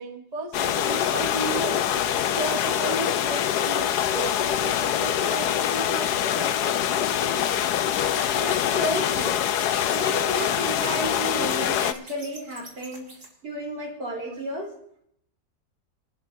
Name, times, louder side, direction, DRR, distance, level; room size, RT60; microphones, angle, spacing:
voice 1, 0.0-7.5 14.3-14.4, right 3 dB, 25° right, 3 dB, 1.2 m, -35 dB
sound 1, 0.5-11.9, left 10 dB, 75° left, 1.2 m, -24 dB
sound 2, 7.9-13.3, right 1 dB, 45° right, 3.4 m, -44 dB
voice 2, 8.3-9.5 9.9-13.1 13.4-14.7, equal, 80° right, -1 dB, 4.8 m, -32 dB
25.5 x 12.0 x 2.7 m, 0.74 s
omnidirectional pair, 1.9 m